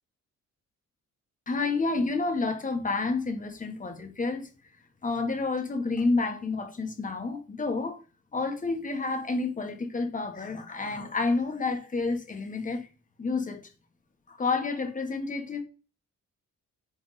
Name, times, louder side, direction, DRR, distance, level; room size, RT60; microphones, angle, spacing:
voice 1, 1.5-4.5 5.0-8.0 8.3-12.9 13.2-13.6 14.3-15.6, left 3 dB, 25° left, 1.4 m, -29 dB
10.0 x 3.5 x 4.1 m
wide cardioid pair, 165°, 32 cm